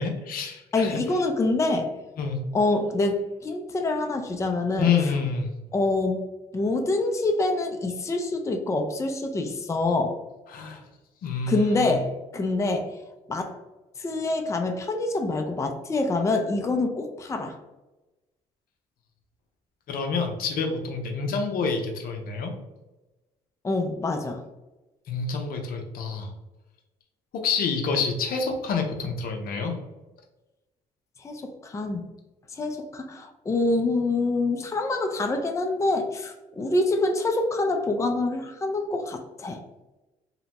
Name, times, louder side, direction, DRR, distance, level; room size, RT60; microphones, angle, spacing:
voice 1, 0.0-1.0 2.2-2.4 4.8-5.5 10.5-10.8 11.2-11.9 19.9-22.5 25.1-26.3 27.3-29.7, left 5 dB, 65° left, 3 dB, 0.6 m, -28 dB
voice 2, 0.7-1.9 2.5-4.9 5.7-6.2 6.5-10.2 11.5-12.9 13.3-13.5 14.0-17.5 23.6-24.4 31.2-32.0 32.5-39.6, left 2 dB, 20° left, 4 dB, 0.4 m, -26 dB
2.8 x 2.0 x 2.8 m, 1.1 s
supercardioid pair, 60°, 16 cm